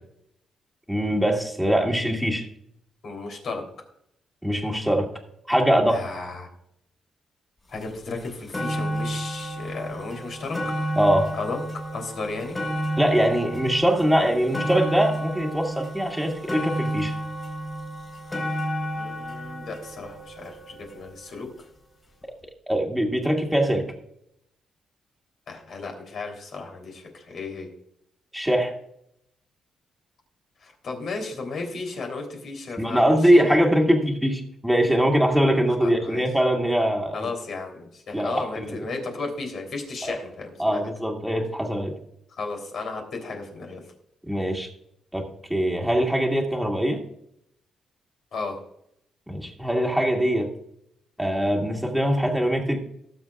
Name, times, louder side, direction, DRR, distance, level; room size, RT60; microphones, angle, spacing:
voice 1, 0.9-2.5 4.4-5.1 5.5-6.0 11.0-11.3 13.0-17.1 22.7-23.9 28.3-28.7 32.8-37.3 38.1-38.8 40.0-40.2 40.6-42.0 44.3-44.7 45.1-47.0 49.3-50.5 51.2-52.8, equal, ahead, 0 dB, 2.2 m, -22 dB
voice 2, 3.0-3.6 5.9-6.5 7.7-10.6 11.3-11.6 11.9-12.6 19.0-21.5 25.5-27.7 30.6-33.6 35.8-36.2 37.1-40.8 42.3-43.8 48.3-48.6, left 3 dB, 55° left, 3 dB, 3.3 m, -34 dB
sound 1, 7.8-7.9 8.2-21.4 22.2-22.3, equal, 25° left, 4.4 m, -31 dB
19.0 x 7.3 x 2.4 m, 0.72 s
cardioid pair, 125°, 0 cm